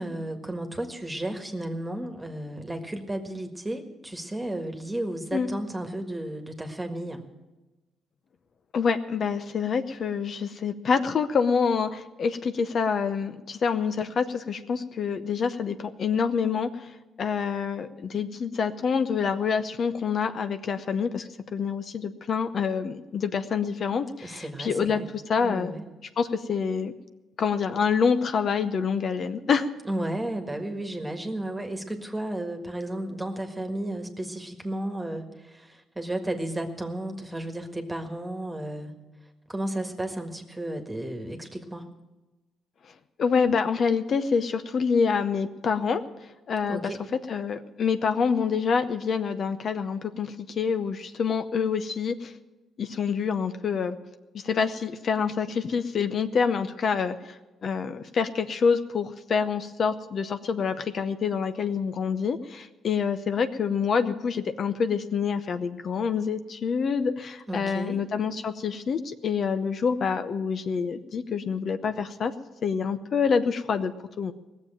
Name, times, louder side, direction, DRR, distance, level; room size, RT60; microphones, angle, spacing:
voice 1, 0.0-7.2 24.2-25.1 25.4-25.8 29.9-38.9 39.5-41.8 46.7-47.0 67.5-68.0, right 1 dB, 15° right, 4 dB, 1.7 m, -33 dB
voice 2, 8.7-16.9 17.2-25.0 25.3-25.7 26.2-26.9 27.4-29.7 43.2-46.0 46.5-46.9 47.3-52.3 52.8-54.0 54.3-72.3 72.6-74.3, left 6 dB, 55° left, 9 dB, 0.7 m, -27 dB
18.0 x 7.4 x 9.0 m, 1.1 s
cardioid pair, 90°, 0 cm